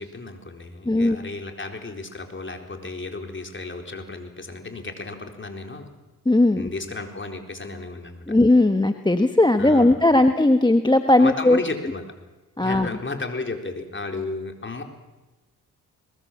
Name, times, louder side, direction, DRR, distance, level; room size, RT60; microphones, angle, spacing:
voice 1, 0.0-5.9 6.5-8.4 9.6-10.0 11.2-12.0 12.6-14.8, left 3 dB, 30° left, 4 dB, 4.1 m, -34 dB
voice 2, 0.8-1.2 6.2-6.7 8.3-11.6 12.6-12.9, left 2 dB, 10° left, 8 dB, 1.2 m, -18 dB
22.0 x 21.0 x 7.5 m, 1.1 s
supercardioid pair, 60°, 36 cm